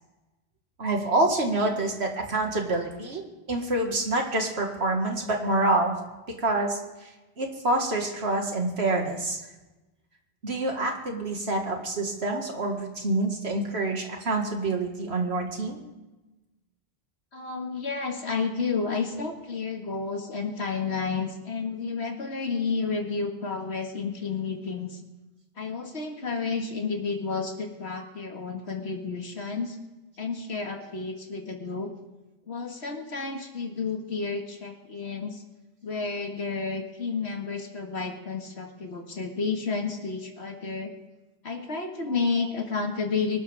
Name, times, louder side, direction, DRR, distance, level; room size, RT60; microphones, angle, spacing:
voice 1, 0.8-3.2 3.5-6.0 6.3-9.4 10.4-15.8 18.8-19.2 42.1-42.5, right 2 dB, 80° right, 2 dB, 2.1 m, -27 dB
voice 2, 17.3-25.0 25.6-29.8 30.2-31.9 32.5-35.4 35.8-40.9 41.4-43.4, left 4 dB, 85° left, 3 dB, 2.1 m, -31 dB
23.5 x 12.5 x 3.5 m, 1.1 s
omnidirectional pair, 1.1 m